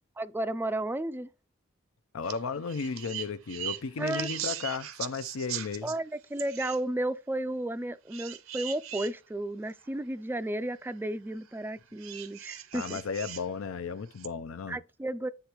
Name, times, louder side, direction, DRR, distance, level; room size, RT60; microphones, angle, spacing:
voice 1, 0.2-1.3 4.0-4.4 5.8-13.0 14.7-15.3, right 1 dB, 10° right, 0.3 m, -33 dB
voice 2, 2.1-5.9 12.7-14.8, left 5 dB, 80° left, 0.5 m, -34 dB
sound 1, 2.2-2.4 2.7-6.0 6.4-6.8 8.1-9.1 9.9-10.0 12.0-13.5 14.2-14.3, right 11 dB, 85° right, 0.7 m, -39 dB
9.6 x 3.4 x 2.9 m
head